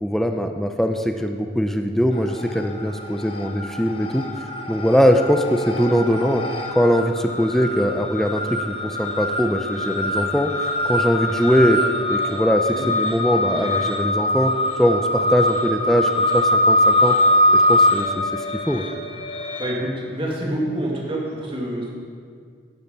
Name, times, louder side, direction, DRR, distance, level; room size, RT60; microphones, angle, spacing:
voice 1, 0.0-4.2 4.7-6.4 6.7-11.8 12.1-14.5 14.8-17.2 17.5-18.8, equal, ahead, 5 dB, 0.5 m, -21 dB
sound 1, 2.2-2.8 3.1-19.7, left 1 dB, 30° left, 0.9 m, -22 dB
voice 2, 19.6-21.9, right 1 dB, 25° right, -2 dB, 2.0 m, -27 dB
11.0 x 10.0 x 5.4 m, 2.1 s
head